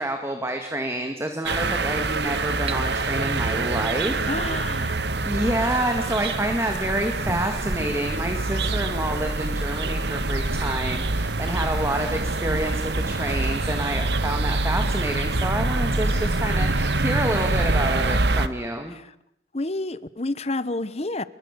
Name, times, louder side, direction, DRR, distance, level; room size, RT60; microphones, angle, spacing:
voice 1, 0.0-4.3 5.2-18.9, right 1 dB, 15° right, 2.2 m, -28 dB
sound 1, 1.4-18.5, right 2 dB, 75° right, 1.4 m, -25 dB
sound 2, 2.7-2.8 4.7-4.8 5.4-6.4 7.2-8.5, right 2 dB, 30° right, 0.9 m, -35 dB
voice 2, 4.2-5.1 16.1-16.6 18.9-19.1 19.5-21.2, left 2 dB, 35° left, 1.0 m, -30 dB
29.0 x 22.5 x 6.9 m
head